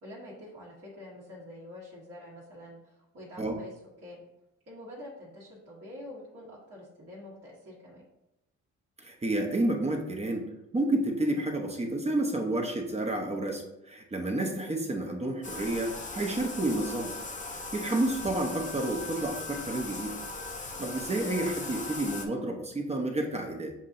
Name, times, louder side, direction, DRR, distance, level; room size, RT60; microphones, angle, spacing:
voice 1, 0.0-3.7 4.0-4.2 4.7-8.0, left 1 dB, 55° right, -7 dB, 1.5 m, -46 dB
voice 2, 9.0-10.5 10.7-17.1 17.5-20.2 20.6-23.7, right 1 dB, 20° right, 2 dB, 0.8 m, -30 dB
Bathtub (filling or washing), 15.4-22.3, left 3 dB, 25° left, 0.6 m, -39 dB
7.2 x 2.6 x 2.6 m, 0.90 s
cardioid pair, 90°, 30 cm